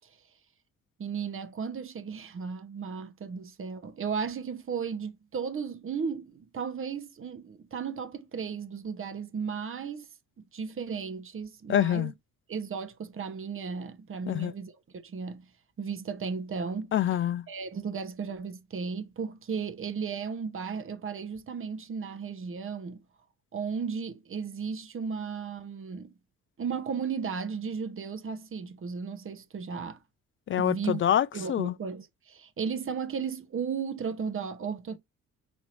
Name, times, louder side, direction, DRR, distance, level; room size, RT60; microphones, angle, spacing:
voice 1, 1.0-10.1 10.5-12.1 12.5-15.5 15.8-16.9 17.5-23.0 23.5-26.1 26.6-30.0 30.6-31.0 31.3-35.0, right 6 dB, 30° right, 1.0 m, -35 dB
voice 2, 11.7-12.1 14.3-14.5 16.9-17.5 30.5-31.7, left 10 dB, 30° left, 0.4 m, -26 dB
6.2 x 2.9 x 2.6 m
figure-of-eight pair, 45°, 42 cm